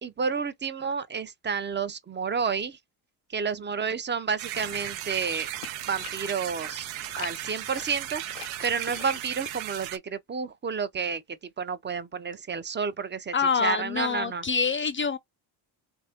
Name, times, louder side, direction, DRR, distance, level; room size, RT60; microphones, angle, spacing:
voice 1, 0.0-2.8 3.3-5.5 5.9-6.9 7.1-11.2 11.6-14.4, right 6 dB, 25° right, 0.6 m, -30 dB
sound 1, 4.4-10.0, right 13 dB, 75° right, 0.8 m, -36 dB
sound 2, 4.5-9.6, left 15 dB, 90° left, 0.7 m, -46 dB
voice 2, 13.3-15.2, left 5 dB, 30° left, 0.3 m, -26 dB
3.3 x 2.7 x 3.4 m
supercardioid pair, 80°, 48 cm